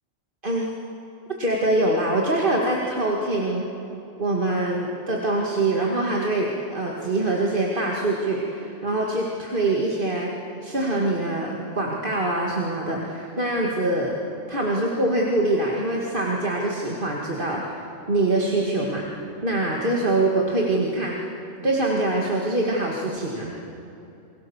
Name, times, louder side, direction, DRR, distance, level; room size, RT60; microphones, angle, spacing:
voice 1, 1.4-3.7 4.2-10.3 10.6-14.2 14.5-17.8 18.1-19.1 19.4-21.2 21.6-23.5, right 2 dB, 40° right, -2 dB, 2.3 m, -24 dB
29.0 x 22.0 x 7.3 m, 2.8 s
omnidirectional pair, 1.4 m